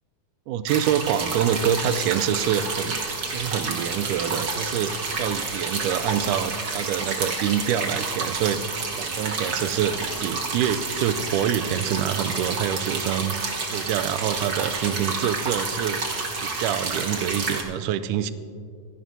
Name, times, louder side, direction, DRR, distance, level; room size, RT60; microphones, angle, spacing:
voice 1, 0.5-3.0 3.3-8.6 9.0-18.3, right 9 dB, 85° right, 12 dB, 2.1 m, -26 dB
sound 1, 0.7-17.6, right 3 dB, 60° right, 0.9 m, -29 dB
25.5 x 11.0 x 2.7 m, 2.4 s
omnidirectional pair, 3.6 m